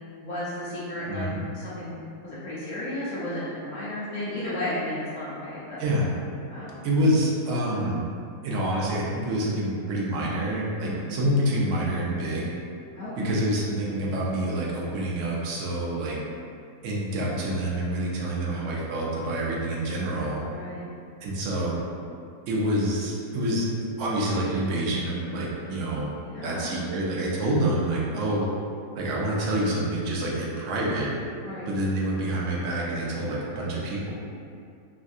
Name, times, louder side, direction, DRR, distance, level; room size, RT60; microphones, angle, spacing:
voice 1, 0.2-5.8 6.5-6.7 10.8-11.0 12.9-13.4 20.5-20.9 26.2-26.7 31.4-31.7, left 1 dB, 65° left, -10 dB, 0.4 m, -33 dB
voice 2, 6.8-8.0 8.4-12.5 13.2-16.2 16.8-20.4 21.2-21.8 22.5-23.7 24.0-26.1 26.4-28.4 28.9-31.1 31.7-34.1, right 1 dB, 70° right, -4 dB, 0.7 m, -27 dB
3.4 x 2.6 x 2.3 m, 2.4 s
omnidirectional pair, 1.8 m